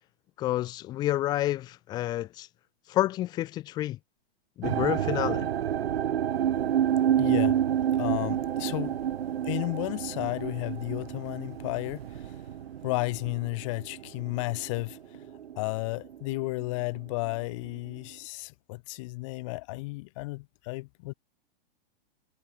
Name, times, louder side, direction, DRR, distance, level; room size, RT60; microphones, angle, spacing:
voice 1, 0.4-2.5 2.9-4.0 4.6-5.5, left 15 dB, 15° left, 0.9 m, -29 dB
sound 1, 4.6-15.8 16.0-16.7 17.3-17.4, right 10 dB, 85° right, 2.0 m, -29 dB
voice 2, 7.2-7.6 8.0-9.0 9.4-12.5 12.8-15.3 15.6-21.1, left 23 dB, 30° left, 2.2 m, -33 dB
hypercardioid pair, 175°, 30 cm